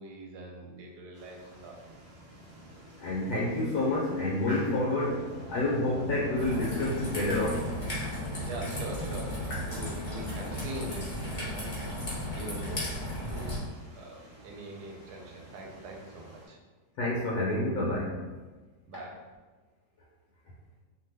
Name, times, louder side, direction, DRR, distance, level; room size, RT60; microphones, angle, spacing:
voice 1, 0.0-1.8 8.5-11.9 12.1-12.9 13.3-13.6 13.9-16.6 18.9-19.2, right 2 dB, 75° right, 0 dB, 1.1 m, -43 dB
sound 1, 1.1-16.5, right 1 dB, 50° right, 0.8 m, -47 dB
voice 2, 3.0-5.2 5.5-7.7 8.0-8.1 9.5-9.9 17.0-18.2, left 2 dB, 70° left, -6 dB, 1.0 m, -29 dB
Raindrop / Trickle dribble, 6.4-13.6, left 1 dB, 45° left, 0.4 m, -35 dB
2.7 x 2.2 x 3.2 m, 1.3 s
omnidirectional pair, 1.8 m